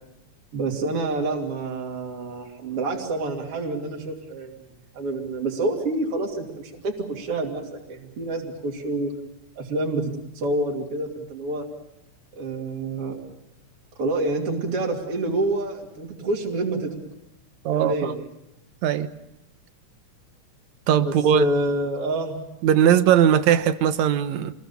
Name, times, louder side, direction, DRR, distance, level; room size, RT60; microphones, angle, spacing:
voice 1, 0.5-4.5 4.9-9.1 9.6-11.6 12.3-13.2 14.0-16.9 17.7-18.2 21.0-22.4, right 2 dB, 45° right, -1 dB, 3.5 m, -27 dB
voice 2, 17.6-18.1 18.8-19.1 20.9-21.5 22.6-24.5, right 9 dB, 70° right, 11 dB, 2.2 m, -19 dB
27.5 x 21.0 x 7.3 m, 0.89 s
omnidirectional pair, 3.6 m